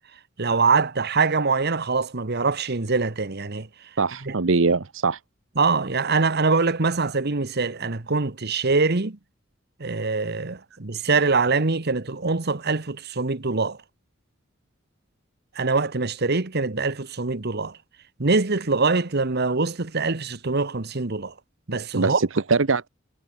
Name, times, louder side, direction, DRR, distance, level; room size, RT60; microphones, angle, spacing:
voice 1, 0.4-3.9 4.2-4.3 5.6-9.2 9.8-13.8 15.5-17.8 18.2-21.3 21.7-22.2, right 4 dB, 55° right, 1.3 m, -24 dB
voice 2, 4.0-5.2 21.9-22.9, right 4 dB, 70° right, 0.9 m, -22 dB
head